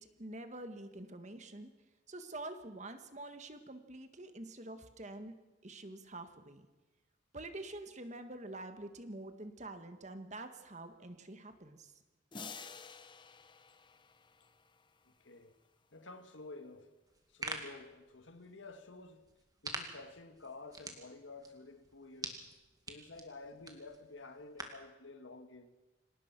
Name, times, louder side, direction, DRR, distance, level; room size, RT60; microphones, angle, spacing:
voice 1, 0.0-1.7 2.1-5.3 5.6-6.7 7.3-11.9, right 2 dB, 35° right, 1.7 m, -47 dB
sound 1, 12.3-15.1, left 5 dB, 25° left, 0.9 m, -50 dB
voice 2, 15.0-15.5 15.9-16.9 17.3-19.3 19.6-22.4 22.9-25.7, left 3 dB, 75° left, 1.9 m, -51 dB
sound 2, 17.1-24.9, right 3 dB, 20° right, 2.2 m, -47 dB
26.0 x 18.5 x 6.1 m
head